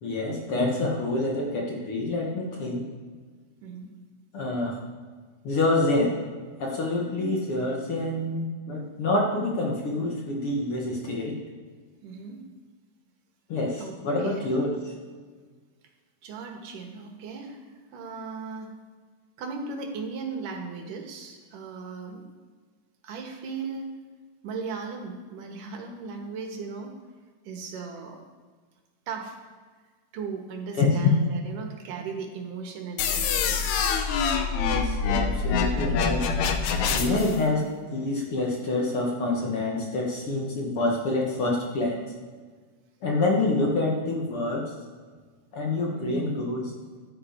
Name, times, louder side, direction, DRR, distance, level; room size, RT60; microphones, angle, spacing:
voice 1, 0.0-2.9 4.3-4.8 5.4-6.1 6.6-11.4 13.5-14.8 30.8-31.1 34.7-36.3 36.9-42.0 43.0-44.7 45.5-46.7, left 2 dB, 50° left, -1 dB, 2.0 m, -27 dB
voice 2, 12.0-12.4 13.8-14.6 16.2-17.6 17.9-18.7 19.4-22.2 23.0-23.9 24.4-26.9 27.4-28.2 29.1-29.4 30.1-33.6 37.1-37.3 45.9-46.4, right 5 dB, 80° right, 2 dB, 3.1 m, -37 dB
sound 1, 33.0-37.4, left 5 dB, 70° left, 2.0 m, -25 dB
14.5 x 10.5 x 4.5 m, 1.5 s
omnidirectional pair, 3.8 m